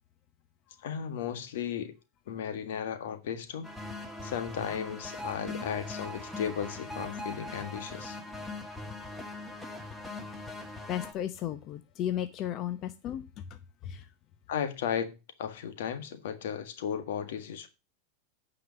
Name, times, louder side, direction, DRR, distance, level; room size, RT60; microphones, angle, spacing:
voice 1, 0.8-1.9 2.3-3.7 4.2-8.2 14.5-17.7, left 8 dB, 75° left, 1.7 m, -35 dB
sound 1, 3.6-11.1, left 2 dB, 5° left, 1.9 m, -41 dB
voice 2, 10.9-13.2 13.9-14.0, left 11 dB, 40° left, 0.9 m, -34 dB
9.5 x 5.1 x 6.4 m
supercardioid pair, 125°, 0 cm